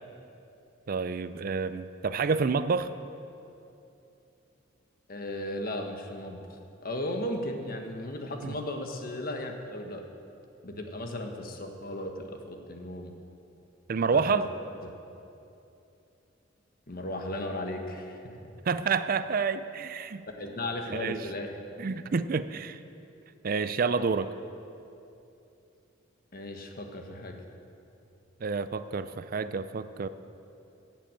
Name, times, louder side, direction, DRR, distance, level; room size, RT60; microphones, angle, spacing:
voice 1, 0.9-2.9 8.4-8.5 13.9-14.5 18.7-20.2 20.9-21.2 21.8-22.8 23.4-24.3 28.4-30.1, right 5 dB, 45° right, 12 dB, 0.4 m, -28 dB
voice 2, 5.1-10.0 10.6-13.1 14.1-14.4 14.8-14.9 16.9-18.5 20.3-21.6 26.3-27.4, left 1 dB, 50° left, 4 dB, 1.4 m, -36 dB
17.0 x 7.7 x 7.6 m, 2.7 s
head